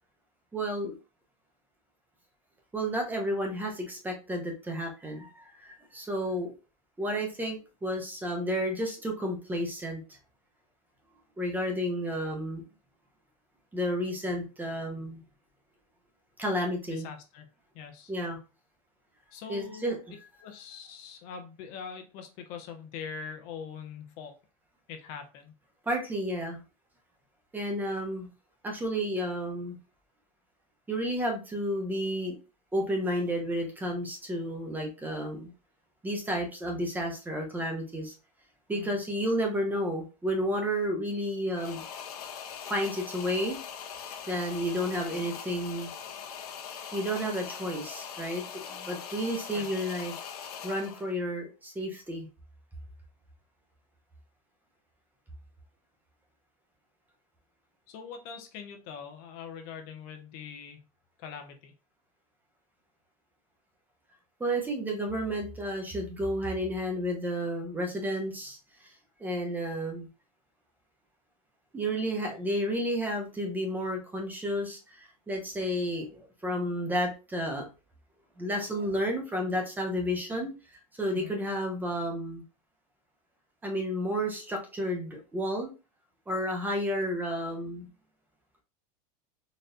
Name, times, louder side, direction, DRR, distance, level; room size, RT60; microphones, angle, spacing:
voice 1, 0.5-0.9 2.7-6.5 7.0-10.2 11.4-12.6 13.7-15.2 16.4-17.1 18.1-18.4 19.5-20.0 25.9-26.6 27.5-28.3 28.6-29.8 30.9-32.3 32.7-35.5 36.0-38.1 38.7-41.8 42.7-43.6 44.3-45.9 46.9-50.1 50.6-52.3 64.4-68.6 68.8-68.9 69.2-70.1 71.7-77.7 78.4-80.5 81.0-82.4 83.6-85.7 86.3-87.9, equal, 10° right, 1 dB, 0.8 m, -31 dB
voice 2, 16.9-17.5 17.7-18.1 19.3-20.0 20.4-24.3 24.9-25.5 38.7-39.0 49.5-49.7 57.9-60.8 61.2-61.7 81.1-81.3, left 6 dB, 50° left, 5 dB, 0.9 m, -43 dB
sound 1, 41.5-51.1, left 7 dB, 85° left, 0.9 m, -41 dB
4.1 x 3.1 x 2.6 m, 0.30 s
supercardioid pair, 145°, 19 cm